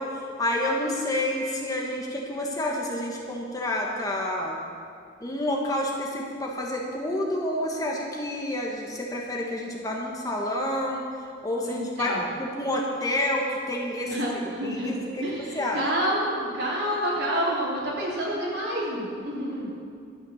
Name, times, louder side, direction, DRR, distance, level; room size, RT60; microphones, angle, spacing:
voice 1, 0.0-4.6 5.2-11.0 11.4-12.1 12.4-14.1 14.6-15.0 15.4-15.8, left 1 dB, 20° left, -1 dB, 1.4 m, -29 dB
voice 2, 11.6-12.2 14.1-14.9 15.2-19.7, equal, 60° right, -5 dB, 3.7 m, -28 dB
12.0 x 8.8 x 7.1 m, 2.4 s
head